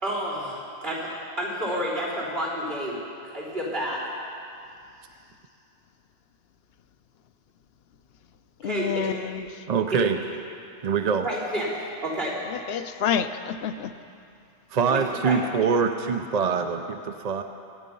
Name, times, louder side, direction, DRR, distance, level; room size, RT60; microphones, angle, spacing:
voice 1, 0.0-3.0 3.2-4.0 8.6-9.1 9.9-10.0 11.2-12.3 14.9-15.4, equal, 70° right, -5 dB, 4.5 m, -30 dB
voice 2, 8.6-9.6 12.4-13.9, left 8 dB, 75° left, 10 dB, 0.9 m, -29 dB
voice 3, 9.7-10.2 10.8-11.3 14.7-17.4, right 6 dB, 45° right, 6 dB, 0.6 m, -24 dB
23.5 x 10.0 x 5.4 m, 2.5 s
omnidirectional pair, 1.0 m